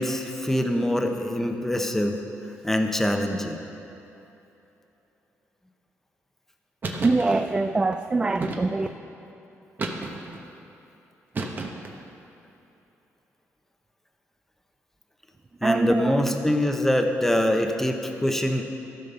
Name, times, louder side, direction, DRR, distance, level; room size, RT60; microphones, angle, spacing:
voice 1, 0.0-2.2 2.6-3.6 15.6-18.6, left 1 dB, 5° left, 0.9 m, -24 dB
sound 1, 6.8-7.3 8.4-9.0 9.8-10.4 11.3-12.0, right 3 dB, 40° right, 1.1 m, -32 dB
voice 2, 7.0-8.9 15.6-16.2, right 3 dB, 20° right, 0.3 m, -23 dB
14.5 x 5.4 x 6.7 m
cardioid pair, 105°, 5 cm